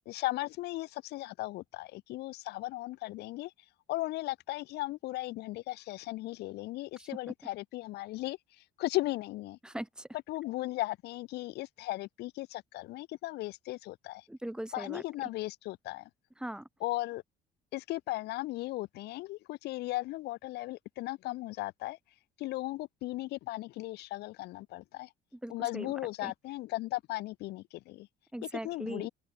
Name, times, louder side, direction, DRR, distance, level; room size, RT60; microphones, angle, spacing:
voice 1, 0.0-3.5 3.9-9.6 10.3-14.3 14.7-16.1 16.8-17.2 17.7-22.0 22.4-25.1 25.5-28.1 28.6-29.1, left 18 dB, 80° left, 0.7 m, -37 dB
voice 2, 9.6-10.1 14.3-15.0 16.4-16.7 25.3-25.9 26.2-26.3 28.3-29.1, right 1 dB, 5° right, 0.9 m, -40 dB
cardioid pair, 110°, 17 cm